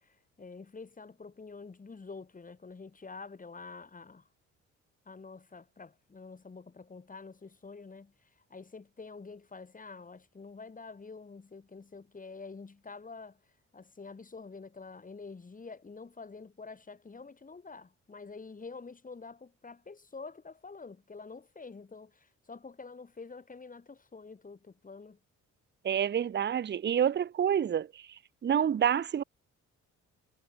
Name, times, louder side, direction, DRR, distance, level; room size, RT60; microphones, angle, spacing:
voice 1, 0.0-4.2 5.1-8.1 8.5-13.4 13.7-25.2, left 4 dB, 25° left, 3.2 m, -47 dB
voice 2, 25.8-28.0 28.4-29.2, right 9 dB, 35° right, 0.7 m, -28 dB
cardioid pair, 90°, 30 cm